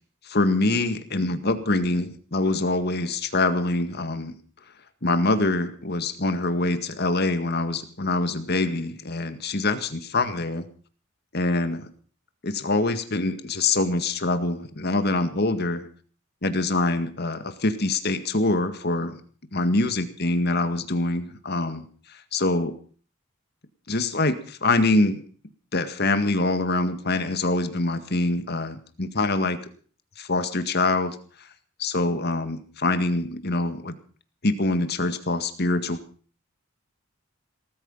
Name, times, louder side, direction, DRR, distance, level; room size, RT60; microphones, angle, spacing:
voice 1, 0.3-4.3 5.0-10.7 11.3-11.9 12.4-15.9 16.4-19.2 19.5-21.9 22.3-22.8 23.9-25.2 25.7-29.6 30.2-31.2 31.8-34.0 34.4-36.0, left 2 dB, 55° left, 9 dB, 1.9 m, -24 dB
18.5 x 14.0 x 5.6 m, 0.42 s
head